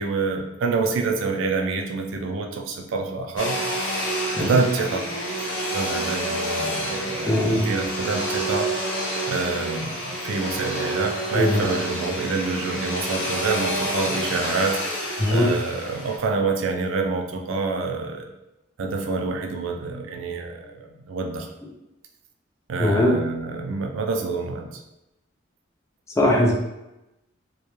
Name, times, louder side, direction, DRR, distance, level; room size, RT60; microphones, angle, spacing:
voice 1, 0.0-3.6 4.4-5.0 5.7-8.7 9.3-14.8 15.3-18.3 18.8-21.5 22.7-24.8, right 4 dB, 85° right, 3 dB, 0.4 m, -27 dB
Domestic sounds home sounds, 3.4-16.2, right 1 dB, 75° left, 0.7 m, -28 dB
voice 2, 7.2-7.6 11.3-11.7 15.2-15.6 22.8-23.2 26.2-26.5, left 1 dB, 15° left, -3 dB, 0.4 m, -19 dB
2.2 x 2.2 x 2.9 m, 0.95 s
head